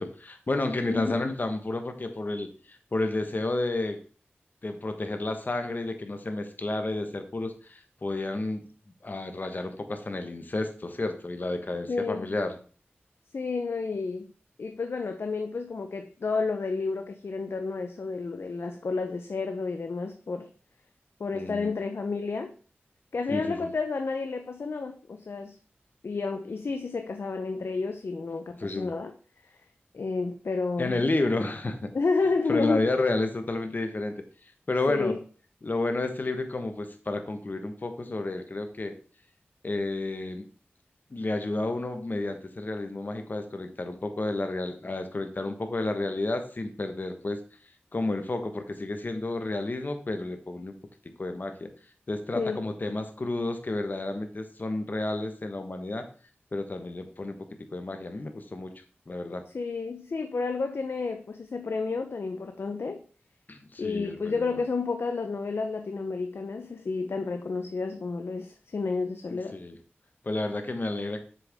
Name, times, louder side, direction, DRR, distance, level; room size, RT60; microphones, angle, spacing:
voice 1, 0.0-4.0 4.6-8.6 9.0-12.6 21.3-21.7 23.3-23.7 28.6-28.9 30.8-31.9 32.5-34.2 34.7-35.1 35.6-38.9 39.6-40.4 41.1-47.4 47.9-50.7 51.2-51.7 52.1-56.0 56.5-57.4 57.7-58.7 59.1-59.4 63.5-64.6 69.3-69.7 70.2-71.2, left 2 dB, 45° left, 1.2 m, -31 dB
voice 2, 0.9-1.3 11.9-12.3 13.3-14.3 14.6-20.5 21.2-22.5 23.1-25.6 26.0-29.1 29.9-31.0 31.9-32.9 34.9-35.2 52.3-52.7 59.5-63.0 63.8-69.6, left 4 dB, 75° left, 0.7 m, -31 dB
7.6 x 6.7 x 3.5 m
wide cardioid pair, 80°, 4 cm